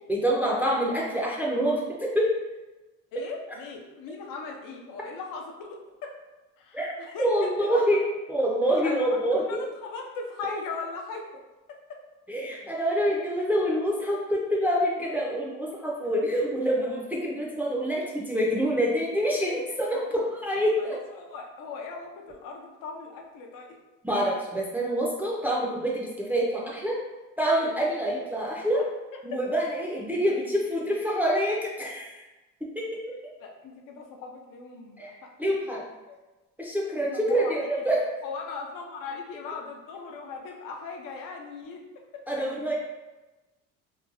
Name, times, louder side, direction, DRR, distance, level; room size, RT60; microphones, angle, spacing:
voice 1, 0.1-2.3 6.7-8.0 8.3-9.7 12.3-21.0 24.0-27.0 27.4-28.8 29.2-32.2 35.0-35.8 36.6-38.0 42.3-42.8, equal, 5° right, -4 dB, 0.5 m, -26 dB
voice 2, 3.1-6.1 6.6-8.0 8.7-9.0 9.3-11.2 11.7-12.0 20.8-23.7 29.3-29.4 33.4-35.8 36.1-36.2 37.1-37.6 38.2-41.8 42.1-42.2, left 4 dB, 60° left, 2 dB, 0.7 m, -39 dB
3.1 x 2.2 x 2.5 m, 1.1 s
supercardioid pair, 85°, 36 cm